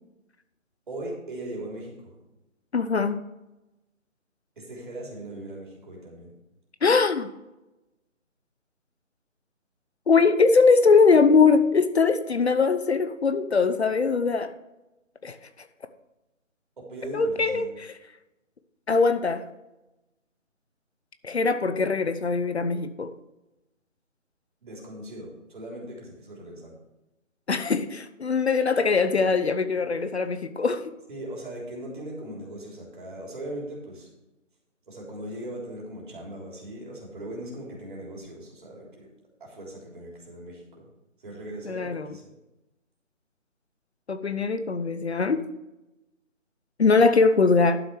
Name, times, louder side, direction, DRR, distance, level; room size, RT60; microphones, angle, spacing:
voice 1, 0.9-2.2 4.6-6.3 16.8-17.6 24.6-26.7 31.1-34.1 34.9-39.1 39.4-40.9 41.2-42.3, right 1 dB, 40° right, -2 dB, 3.5 m, -39 dB
voice 2, 2.7-3.2 6.8-7.3 10.1-14.5 15.2-15.4 17.1-17.9 18.9-19.5 21.2-23.1 27.5-30.9 41.6-42.2 44.1-45.5 46.8-47.8, left 4 dB, 55° left, 10 dB, 0.8 m, -21 dB
11.5 x 6.3 x 4.6 m, 0.97 s
figure-of-eight pair, 160°, 39 cm